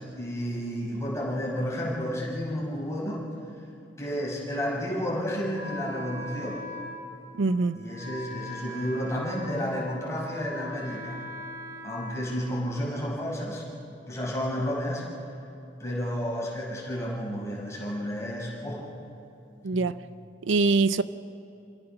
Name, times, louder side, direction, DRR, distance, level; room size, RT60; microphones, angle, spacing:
voice 1, 0.0-3.2 4.0-6.6 7.7-11.2 11.8-13.6 14.1-15.0 15.8-18.8 19.7-19.9, equal, 15° left, 5.8 m, -31 dB
Wind instrument woodwind instrument, 5.5-13.2, left 1 dB, 15° right, 2.3 m, -41 dB
voice 2, 7.3-7.8 19.6-19.9 20.5-21.0, right 3 dB, 90° right, 0.6 m, -23 dB
27.5 x 16.5 x 5.8 m
head